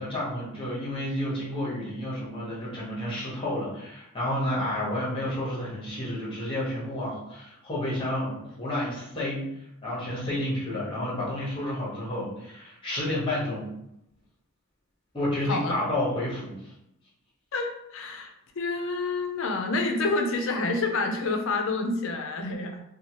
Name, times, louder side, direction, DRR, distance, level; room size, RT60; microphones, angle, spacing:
voice 1, 0.0-9.5 9.8-13.7 15.1-16.6, left 1 dB, 25° left, -6 dB, 0.9 m, -30 dB
voice 2, 17.5-22.8, left 3 dB, 60° left, 4 dB, 0.4 m, -28 dB
2.7 x 2.3 x 2.9 m, 0.81 s
head